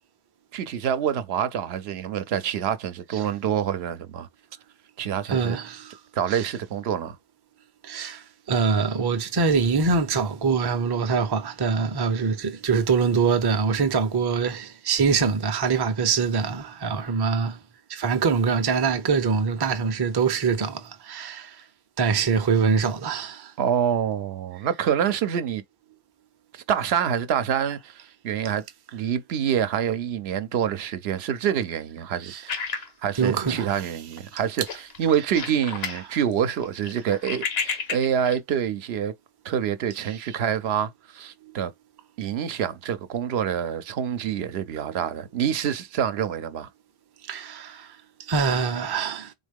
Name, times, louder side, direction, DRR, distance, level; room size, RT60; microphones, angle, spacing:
voice 1, 0.5-4.3 5.0-5.6 6.1-7.2 23.6-25.6 26.5-28.6 28.9-39.1 39.4-41.7 42.2-46.7, right 9 dB, 85° right, 0.8 m, -26 dB
voice 2, 5.3-6.0 6.3-6.5 7.8-17.6 17.9-21.6 22.0-23.5 32.2-32.5 33.2-33.9 40.1-40.2 41.4-41.6 44.9-45.0 47.2-49.3, right 5 dB, 30° right, 0.5 m, -24 dB
sound 1, 32.5-33.9 34.2-34.4 34.6-36.0 36.4-38.4, left 5 dB, 80° left, 1.1 m, -32 dB
4.0 x 3.6 x 3.5 m
omnidirectional pair, 1.0 m